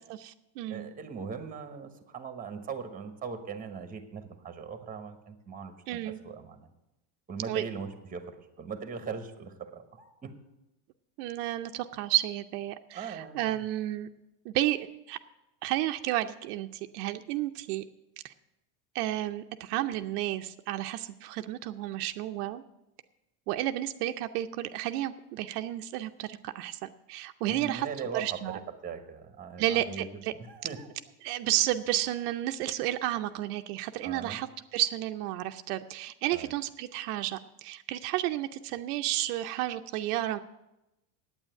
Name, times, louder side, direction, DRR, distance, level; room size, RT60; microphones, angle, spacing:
voice 1, 0.1-0.9 5.9-6.2 7.5-7.6 11.2-14.1 14.4-15.2 15.6-17.8 18.2-18.3 18.9-22.6 23.5-27.9 28.1-28.6 29.6-30.3 31.2-34.5 34.7-40.4, right 14 dB, 70° right, 7 dB, 0.7 m, -32 dB
voice 2, 0.7-6.7 7.3-10.3 12.9-13.6 27.5-30.9 34.0-34.4 36.3-36.5, right 6 dB, 15° right, 9 dB, 1.1 m, -40 dB
9.0 x 8.7 x 8.9 m, 0.93 s
supercardioid pair, 140°, 47 cm